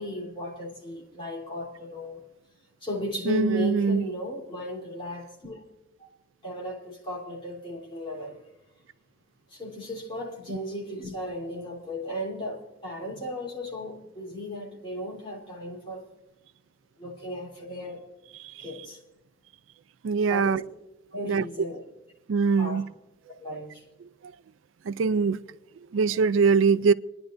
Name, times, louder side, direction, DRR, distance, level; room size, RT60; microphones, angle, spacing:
voice 1, 0.0-2.2 2.8-5.6 6.0-6.1 6.4-8.4 9.5-16.0 17.0-18.0 18.6-19.0 20.3-20.6 21.1-21.8 22.6-22.8 23.4-23.8, left 1 dB, 30° left, 3.4 m, -35 dB
voice 2, 3.3-4.1 10.5-10.6 20.0-20.6 21.3-21.4 22.3-22.8 24.9-25.4 25.9-26.9, right 5 dB, 85° right, 0.4 m, -22 dB
28.0 x 10.5 x 2.6 m
head